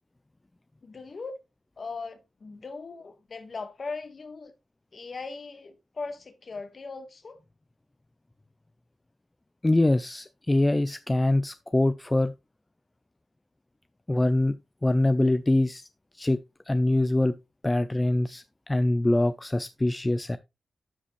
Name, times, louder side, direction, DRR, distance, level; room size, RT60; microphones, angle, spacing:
voice 1, 0.8-1.4 1.8-4.5 4.9-7.4, left 4 dB, 50° left, 1.4 m, -39 dB
voice 2, 9.6-12.3 14.1-14.5 14.8-15.8 16.2-16.4 16.7-17.3 17.6-20.4, left 1 dB, 15° left, 0.4 m, -24 dB
12.5 x 5.1 x 3.1 m
wide cardioid pair, 100°, 0 cm